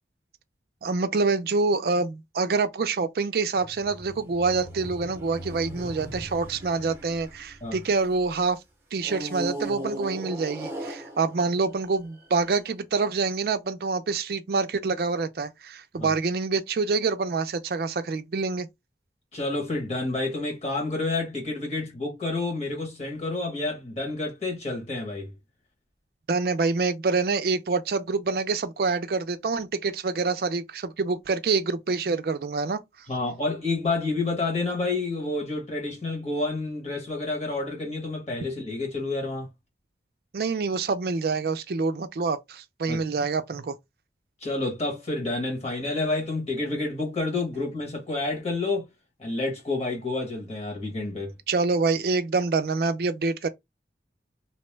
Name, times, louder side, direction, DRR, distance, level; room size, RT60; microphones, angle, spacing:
voice 1, 0.8-8.6 8.9-18.7 26.3-32.8 40.3-43.8 51.5-53.5, right 4 dB, 60° right, 0.4 m, -26 dB
sound 1, 3.6-8.3 9.0-12.4, right 1 dB, 15° right, 0.7 m, -38 dB
voice 2, 19.3-25.3 33.1-39.5 42.9-43.0 44.4-48.9 49.2-51.3, left 2 dB, 35° left, 1.4 m, -29 dB
2.9 x 2.1 x 3.2 m
head